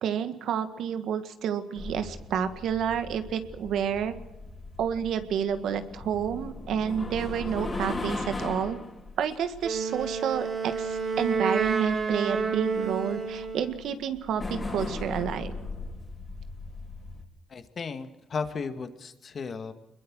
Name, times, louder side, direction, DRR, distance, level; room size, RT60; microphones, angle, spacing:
voice 1, 0.0-4.2 4.8-8.8 9.2-15.5, right 8 dB, 75° right, 9 dB, 1.8 m, -30 dB
sound 1, 1.7-17.2, left 3 dB, 25° left, 4.2 m, -38 dB
Wind instrument woodwind instrument, 9.6-13.8, right 5 dB, 45° right, 5.4 m, -29 dB
voice 2, 17.5-19.7, left 5 dB, 45° left, 8 dB, 2.1 m, -35 dB
24.0 x 21.5 x 6.4 m, 0.98 s
cardioid pair, 90°, 0 cm